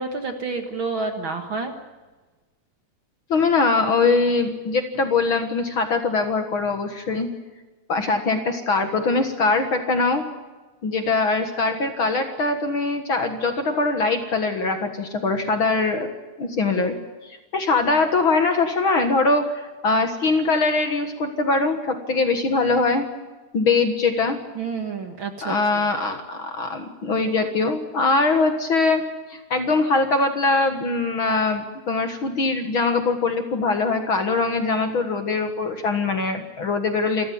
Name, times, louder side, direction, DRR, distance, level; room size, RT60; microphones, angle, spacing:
voice 1, 0.0-1.7 24.6-25.9, right 4 dB, 45° right, 5 dB, 2.1 m, -29 dB
voice 2, 3.3-7.3 7.9-10.2 10.8-16.1 16.4-17.0 17.2-23.1 23.5-24.4 25.4-29.0 29.3-37.3, left 3 dB, 45° left, 6 dB, 2.1 m, -22 dB
27.5 x 14.0 x 9.4 m, 1.2 s
omnidirectional pair, 3.5 m